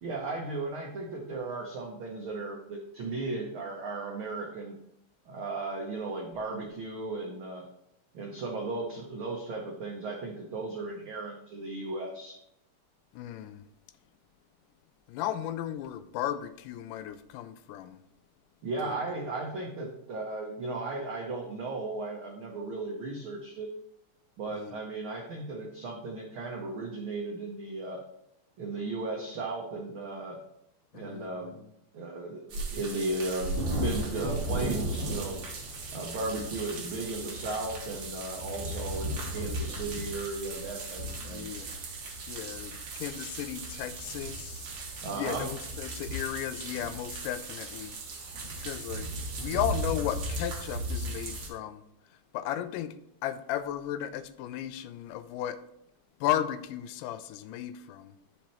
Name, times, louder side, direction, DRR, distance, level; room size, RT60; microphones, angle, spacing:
voice 1, 0.0-4.8 5.3-7.6 8.1-12.4 18.6-23.7 24.4-28.0 28.6-30.4 30.9-31.6 31.9-35.4 35.9-41.5 45.0-45.5, right 3 dB, 85° right, 0 dB, 1.1 m, -36 dB
voice 2, 13.1-13.6 15.1-18.0 18.8-19.0 24.5-24.8 30.9-31.7 39.4-39.8 41.2-41.9 42.3-44.6 45.1-48.0 48.6-49.1 49.4-51.8 52.3-53.0 53.2-55.6 56.2-58.1, left 11 dB, 90° left, 12 dB, 2.1 m, -35 dB
sound 1, 32.5-51.5, right 1 dB, 55° right, 1.5 m, -36 dB
10.0 x 5.7 x 3.0 m, 0.78 s
omnidirectional pair, 3.6 m